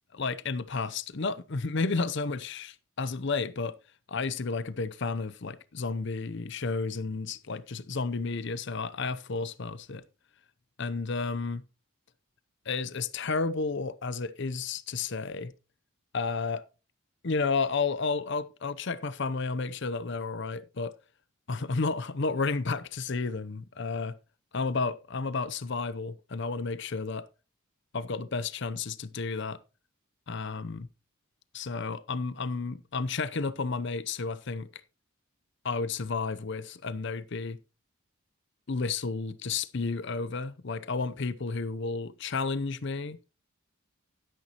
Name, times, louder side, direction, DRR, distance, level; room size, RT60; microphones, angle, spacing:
voice 1, 0.1-3.8 4.1-10.0 10.8-11.6 12.7-15.5 16.1-16.6 17.2-20.9 21.5-24.2 24.5-27.3 27.9-29.6 30.3-30.9 31.5-34.8 35.6-37.6 38.7-43.2, left 4 dB, 55° left, 0.7 m, -32 dB
11.5 x 10.5 x 2.9 m
head